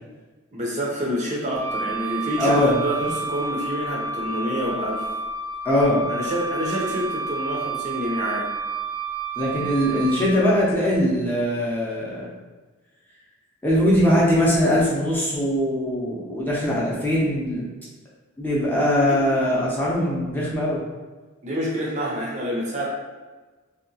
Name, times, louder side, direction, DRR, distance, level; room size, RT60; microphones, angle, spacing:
voice 1, 0.5-5.1 6.1-8.5 19.1-19.2 21.4-22.9, equal, 35° right, -4 dB, 0.6 m, -27 dB
Wind instrument woodwind instrument, 1.5-10.3, right 3 dB, 55° left, 0.8 m, -30 dB
voice 2, 2.4-2.8 3.0-3.1 5.6-6.0 9.4-12.3 13.6-17.7 18.4-20.8, left 1 dB, 10° left, -6 dB, 0.6 m, -21 dB
2.9 x 2.8 x 2.7 m, 1.3 s
head